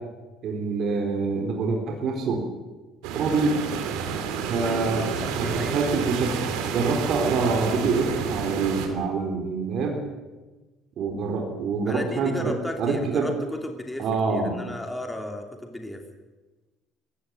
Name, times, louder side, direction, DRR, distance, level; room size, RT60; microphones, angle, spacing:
voice 1, 0.4-2.4 3.1-3.6 4.5-5.1 5.4-6.4 6.7-10.0 11.0-13.3 14.0-14.6, right 4 dB, 50° right, 2 dB, 4.2 m, -26 dB
sound 1, 3.0-8.9, right 6 dB, 90° right, 3.4 m, -29 dB
voice 2, 4.6-5.9 11.9-16.0, left 1 dB, 5° left, 4 dB, 2.8 m, -34 dB
21.5 x 16.0 x 9.0 m, 1.2 s
cardioid pair, 135°, 0 cm